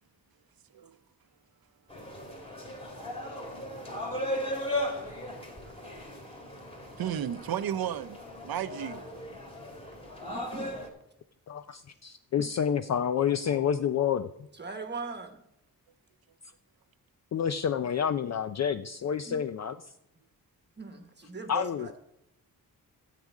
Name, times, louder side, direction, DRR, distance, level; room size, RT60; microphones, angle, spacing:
sound 1, 1.9-10.9, left 1 dB, 15° left, 2.1 m, -37 dB
voice 1, 7.0-9.0, right 10 dB, 75° right, 0.7 m, -33 dB
voice 2, 10.3-10.8 14.5-15.4 19.3-19.4 20.8-22.0, right 4 dB, 30° right, 1.1 m, -39 dB
voice 3, 11.5-14.3 17.3-19.8 21.5-21.9, left 8 dB, 50° left, 0.4 m, -29 dB
13.0 x 5.0 x 8.2 m
wide cardioid pair, 165°, 36 cm